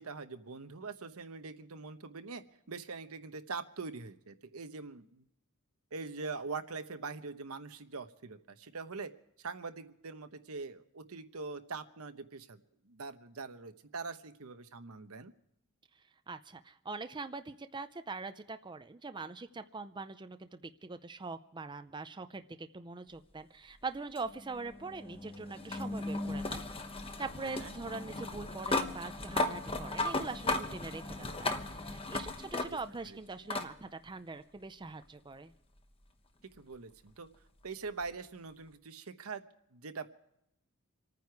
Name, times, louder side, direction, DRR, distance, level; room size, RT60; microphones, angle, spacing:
voice 1, 0.0-5.2 5.9-9.1 9.4-15.3 27.4-27.7 33.1-33.2 36.6-37.3 37.6-39.4 39.7-40.1, right 4 dB, 80° right, 9 dB, 1.0 m, -43 dB
voice 2, 16.3-26.8 27.2-35.5, right 3 dB, 20° right, 10 dB, 0.5 m, -43 dB
sound 1, 24.1-33.0 33.5-33.7 35.0-35.1 38.0-38.1, left 2 dB, 25° left, 1.1 m, -36 dB
28.0 x 9.5 x 4.7 m, 0.79 s
head